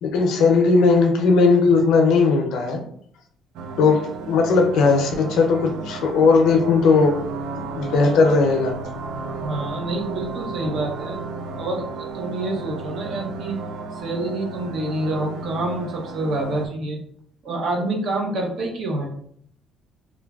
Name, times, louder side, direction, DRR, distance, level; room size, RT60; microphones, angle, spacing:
voice 1, 0.0-2.8 3.8-4.0 4.3-7.1 7.5-8.7, left 4 dB, 75° left, 3 dB, 0.5 m, -17 dB
sound 1, 3.5-16.7, right 3 dB, 75° right, 0.3 m, -33 dB
voice 2, 9.4-11.2 11.6-13.6 13.9-17.0 17.4-19.1, right 2 dB, 60° right, 0 dB, 0.7 m, -27 dB
3.1 x 2.2 x 2.3 m, 0.66 s
cardioid pair, 130°, 0 cm